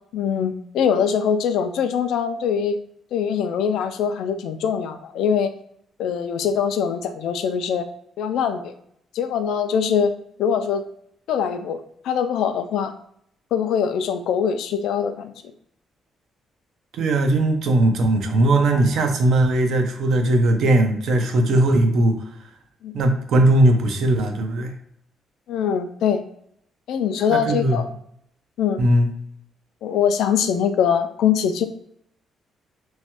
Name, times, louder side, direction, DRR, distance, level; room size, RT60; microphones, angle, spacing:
voice 1, 0.1-2.8 3.1-5.5 6.0-7.9 8.2-8.7 9.1-10.1 10.4-10.8 11.3-11.8 12.0-12.9 13.5-15.3 22.8-22.9 25.5-26.2 26.9-27.9 28.6-28.8 29.8-31.7, left 7 dB, 80° left, 9 dB, 0.3 m, -22 dB
voice 2, 16.9-22.1 22.9-24.7 27.3-27.8 28.8-29.1, right 1 dB, 70° right, 5 dB, 0.6 m, -19 dB
3.0 x 2.3 x 2.8 m, 0.69 s
cardioid pair, 90°, 0 cm